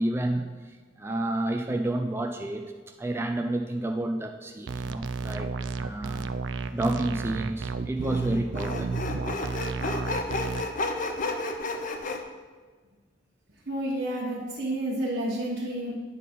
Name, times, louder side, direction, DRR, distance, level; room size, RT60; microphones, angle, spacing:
voice 1, 0.0-2.6 3.0-5.5 5.7-6.3 6.7-8.9, right 1 dB, 15° right, 4 dB, 0.4 m, -30 dB
sound 1, 4.7-10.6, right 4 dB, 85° right, 0.4 m, -32 dB
Sawing, 6.8-6.9 8.0-12.2, left 2 dB, 45° left, 0.7 m, -32 dB
voice 2, 13.7-15.9, right 1 dB, 60° right, -5 dB, 1.1 m, -30 dB
9.2 x 4.1 x 5.3 m, 1.5 s
head